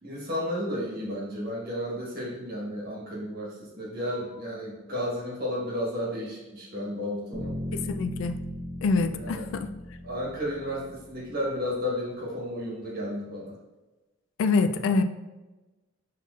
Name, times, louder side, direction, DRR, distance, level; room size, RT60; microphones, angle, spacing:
voice 1, 0.0-7.5 9.1-9.4 10.0-13.5, equal, 45° right, -4 dB, 1.2 m, -33 dB
sound 1, 7.3-11.4, left 1 dB, 15° left, 1.3 m, -37 dB
voice 2, 7.7-8.4 8.8-9.7 14.4-15.0, left 4 dB, 65° left, 9 dB, 0.3 m, -25 dB
5.9 x 2.9 x 2.4 m, 1.1 s
head